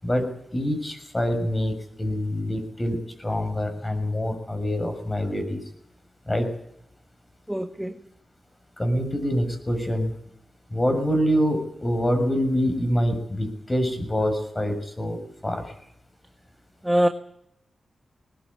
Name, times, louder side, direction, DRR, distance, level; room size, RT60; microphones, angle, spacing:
voice 1, 0.0-5.6 6.3-6.5 8.8-10.1 10.7-15.7, equal, 20° left, 6 dB, 6.6 m, -25 dB
voice 2, 7.5-7.9 16.8-17.1, equal, 5° right, 7 dB, 1.3 m, -22 dB
20.5 x 20.0 x 8.6 m, 0.76 s
cardioid pair, 80°, 0 cm